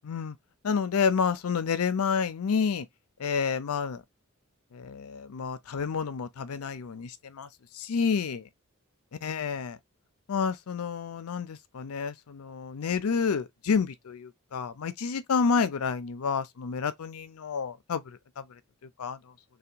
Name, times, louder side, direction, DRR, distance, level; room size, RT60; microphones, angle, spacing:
voice 1, 0.0-0.4 0.6-2.9 3.2-4.0 4.7-7.5 7.7-8.5 9.2-9.8 10.3-18.6 19.0-19.3, left 5 dB, 90° left, 0.5 m, -29 dB
3.4 x 2.3 x 2.8 m
head